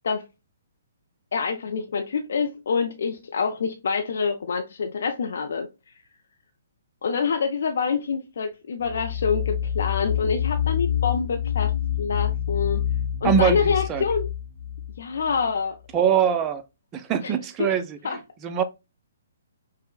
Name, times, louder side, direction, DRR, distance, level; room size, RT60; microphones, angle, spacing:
voice 1, 1.3-5.7 7.0-11.7 12.0-12.8 13.2-14.3 15.0-15.8 17.2-17.3 17.6-17.7 18.0-18.2, left 5 dB, 65° left, 0.4 m, -26 dB
sound 1, 8.8-15.5, left 10 dB, 85° left, 1.0 m, -27 dB
voice 2, 13.2-14.0 15.9-16.6 16.9-18.6, right 8 dB, 25° right, 0.4 m, -23 dB
5.2 x 2.0 x 2.2 m
figure-of-eight pair, 130°, 0 cm